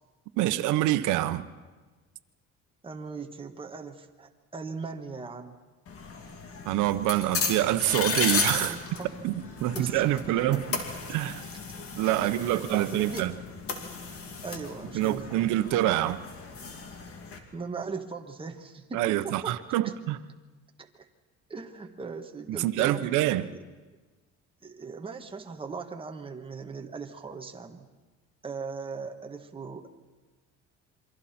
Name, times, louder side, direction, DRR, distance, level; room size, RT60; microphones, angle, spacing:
voice 1, 0.4-1.4 6.7-8.8 9.2-9.3 9.6-10.6 11.1-11.5 11.9-13.3 14.9-16.2 18.9-20.2 22.6-23.5, right 14 dB, 80° right, 11 dB, 1.0 m, -26 dB
voice 2, 2.8-5.5 8.6-9.1 9.7-10.6 12.2-13.3 14.4-15.4 17.5-19.6 19.8-19.9 20.8-21.1 21.5-23.0 24.6-27.9 28.4-30.1, right 4 dB, 20° right, 3 dB, 1.5 m, -39 dB
sound 1, 5.9-17.4, left 4 dB, 50° left, 2.7 m, -34 dB
28.0 x 24.0 x 4.4 m, 1.3 s
cardioid pair, 115°, 30 cm